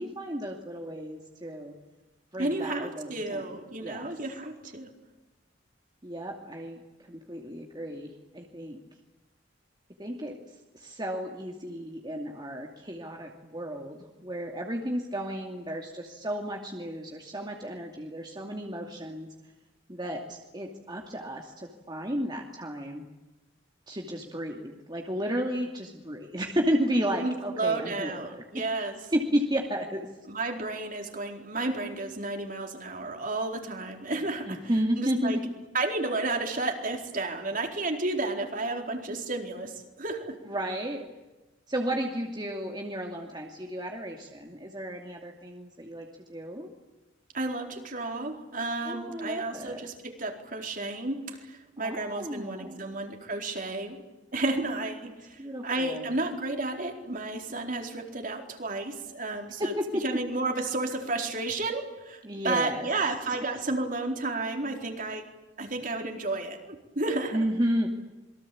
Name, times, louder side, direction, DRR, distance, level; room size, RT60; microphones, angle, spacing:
voice 1, 0.0-1.7 2.3-3.5 3.8-4.1 6.0-6.8 7.1-8.8 10.0-10.4 10.7-19.3 19.9-23.1 23.9-28.6 29.1-30.1 34.5-35.5 40.4-41.1 41.7-46.7 48.8-49.9 51.8-52.9 55.4-56.1 59.6-60.0 62.2-62.9 67.3-67.9, equal, 20° right, 1 dB, 2.5 m, -33 dB
voice 2, 2.4-4.9 27.2-29.0 30.3-34.6 35.0-35.4 35.7-40.4 47.3-54.0 54.3-59.7 60.0-65.3 65.6-67.4, right 2 dB, 45° right, 3 dB, 4.3 m, -32 dB
27.5 x 23.0 x 8.7 m, 1.1 s
head